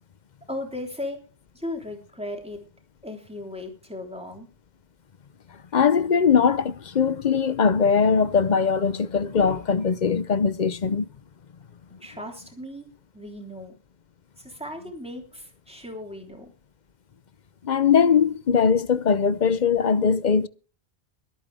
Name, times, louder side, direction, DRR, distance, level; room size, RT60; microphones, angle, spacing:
voice 1, 0.5-1.2 1.5-2.6 3.0-4.5 12.0-12.9 13.1-13.8 14.4-16.5, left 1 dB, 5° right, 3.5 m, -36 dB
voice 2, 5.7-11.1 17.6-20.5, left 6 dB, 50° left, 0.8 m, -21 dB
23.0 x 9.0 x 3.5 m
omnidirectional pair, 1.0 m